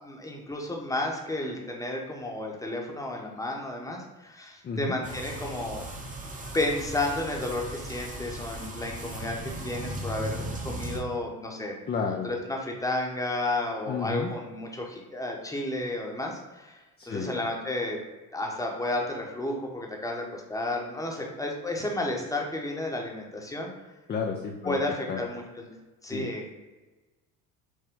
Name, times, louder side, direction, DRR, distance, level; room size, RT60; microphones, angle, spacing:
voice 1, 0.0-5.9 6.5-11.7 12.1-16.8 17.1-18.0 18.3-23.7 24.6-25.7 26.0-26.6, left 2 dB, 10° left, 0 dB, 0.9 m, -32 dB
voice 2, 4.6-5.0 11.9-12.3 13.9-14.3 17.0-17.4 24.1-24.8 25.1-25.2 26.1-26.3, left 5 dB, 25° left, 1 dB, 0.5 m, -31 dB
sound 1, 5.0-11.0, right 1 dB, 20° right, 0.8 m, -37 dB
6.1 x 2.1 x 3.6 m, 1.2 s
supercardioid pair, 80°, 43 cm